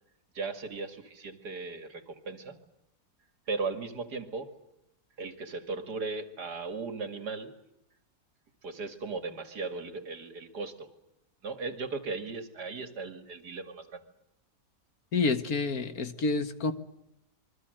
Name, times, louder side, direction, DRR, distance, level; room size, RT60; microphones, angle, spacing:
voice 1, 0.3-2.6 3.5-4.6 5.2-7.6 8.6-10.9 11.4-14.0, right 4 dB, 90° right, 9 dB, 2.9 m, -37 dB
voice 2, 15.1-16.7, left 4 dB, 65° left, 10 dB, 2.0 m, -28 dB
27.5 x 23.5 x 7.9 m, 0.83 s
omnidirectional pair, 1.7 m